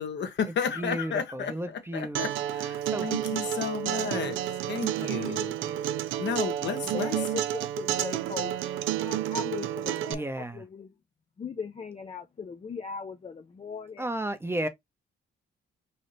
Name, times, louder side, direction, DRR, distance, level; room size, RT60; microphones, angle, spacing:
voice 1, 0.0-1.5 1.9-4.4 4.7-5.5 6.2-7.2, left 7 dB, 65° left, 1.0 m, -32 dB
voice 2, 0.8-2.2 2.9-3.5 5.0-5.8 10.1-10.6 14.0-14.7, right 1 dB, 10° right, 0.7 m, -34 dB
Acoustic guitar, 2.1-10.1, right 11 dB, 85° right, 0.4 m, -30 dB
voice 3, 6.9-8.5 9.0-10.9 11.4-14.1 14.5-14.6, left 5 dB, 30° left, 0.6 m, -38 dB
3.3 x 2.8 x 4.0 m
cardioid pair, 90°, 20 cm